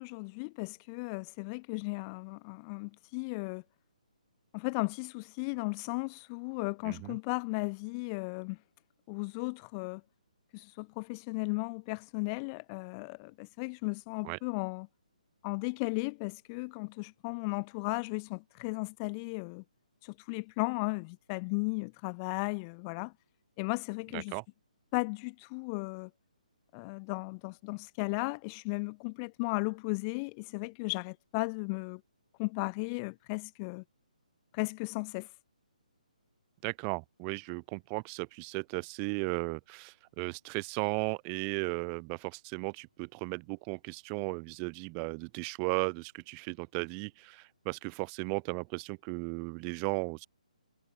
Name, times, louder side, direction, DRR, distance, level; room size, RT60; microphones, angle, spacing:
voice 1, 0.0-3.6 4.5-8.6 9.1-10.0 10.5-14.9 15.4-19.6 20.0-23.1 23.6-24.3 24.9-26.1 26.7-32.0 32.4-33.8 34.5-35.3, left 32 dB, 25° left, 1.6 m, -35 dB
voice 2, 6.8-7.2 14.2-14.4 24.1-24.4 36.6-50.3, right 40 dB or more, 25° right, 2.1 m, -36 dB
hypercardioid pair, 145°, 4 cm